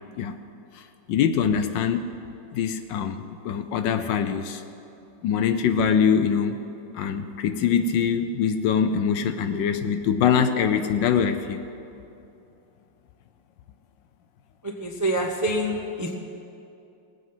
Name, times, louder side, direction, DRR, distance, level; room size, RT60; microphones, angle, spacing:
voice 1, 1.1-2.1 2.5-4.6 5.2-6.6 6.9-11.6, left 7 dB, 70° left, 9 dB, 1.2 m, -23 dB
voice 2, 14.8-16.1, right 1 dB, 20° right, 1 dB, 0.4 m, -26 dB
20.5 x 8.4 x 5.6 m, 2.7 s
omnidirectional pair, 2.2 m